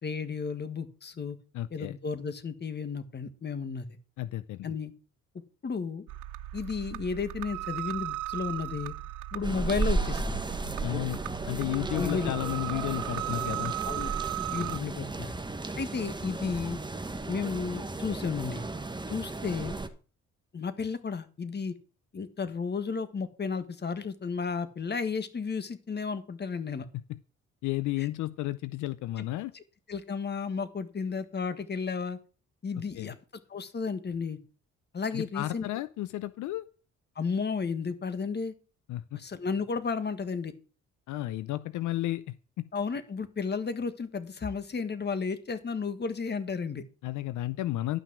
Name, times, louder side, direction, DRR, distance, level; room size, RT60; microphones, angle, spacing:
voice 1, 0.0-1.4 1.7-3.9 4.6-4.9 5.6-6.0 6.5-8.9 9.3-10.4 12.0-12.3 13.8-14.1 14.5-15.3 15.8-16.8 17.3-18.6 19.1-19.8 20.5-21.7 22.1-26.8 28.0-28.1 29.5-29.6 29.9-32.2 32.6-33.2 33.5-34.4 34.9-35.6 37.1-38.5 39.1-40.5 42.7-46.8, left 5 dB, 35° left, 11 dB, 1.5 m, -33 dB
voice 2, 1.5-2.0 4.2-4.8 10.8-11.2 11.5-13.7 14.6-14.8 27.1-27.2 27.6-29.5 33.0-33.1 35.1-36.7 38.9-39.2 41.1-42.6 47.0-48.0, left 16 dB, 80° left, 15 dB, 0.6 m, -33 dB
sound 1, 6.1-14.8, right 15 dB, 85° right, 0.5 m, -37 dB
sound 2, 9.4-19.9, right 3 dB, 15° right, 1.4 m, -34 dB
12.0 x 6.0 x 6.1 m, 0.36 s
cardioid pair, 90°, 30 cm